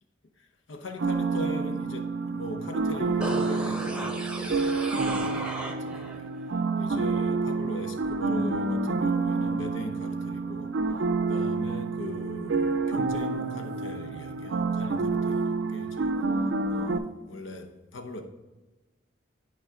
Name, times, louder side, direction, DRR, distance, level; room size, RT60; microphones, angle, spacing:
voice 1, 0.4-6.4 6.8-16.2 16.7-18.2, left 1 dB, 90° left, 1.0 m, -40 dB
sound 1, 1.0-17.0, right 4 dB, 75° right, 0.5 m, -28 dB
sound 2, 3.2-6.2 6.5-6.6, right 1 dB, 5° right, 0.7 m, -35 dB
11.0 x 4.9 x 3.7 m
head